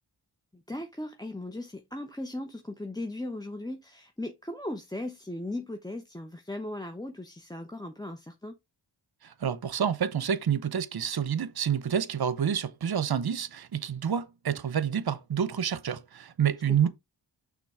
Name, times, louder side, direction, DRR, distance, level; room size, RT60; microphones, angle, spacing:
voice 1, 0.5-8.5 16.7-16.8, left 1 dB, 10° left, 0.9 m, -37 dB
voice 2, 9.2-16.9, right 8 dB, 55° right, 0.8 m, -28 dB
6.0 x 3.9 x 4.8 m
cardioid pair, 45°, 46 cm